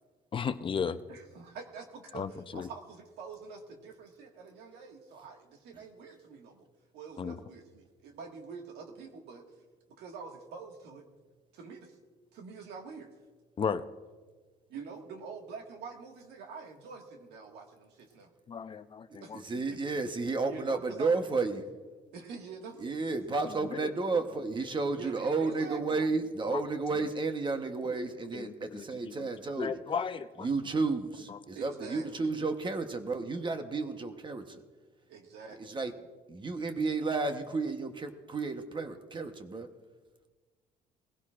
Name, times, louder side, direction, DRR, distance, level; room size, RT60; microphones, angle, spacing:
voice 1, 0.3-1.0 2.1-2.7 7.2-7.4 13.6-13.9 18.5-19.4 23.8-23.9 26.5-26.6 28.3-29.3 29.6-30.5 31.3-31.4, left 6 dB, 30° left, 11 dB, 0.6 m, -35 dB
voice 2, 1.1-6.7 6.9-9.4 9.9-11.1 11.5-12.0 12.3-13.1 14.7-18.3 19.2-19.4 19.7-19.8 20.5-21.1 22.1-22.9 25.0-26.0 31.5-32.3 35.1-35.8, right 5 dB, 80° right, 2 dB, 1.8 m, -46 dB
voice 3, 19.4-21.7 22.8-29.7 30.4-34.6 35.6-35.9 36.3-39.7, right 3 dB, 30° right, 7 dB, 1.0 m, -32 dB
20.0 x 16.0 x 2.5 m, 1.4 s
cardioid pair, 110°, 17 cm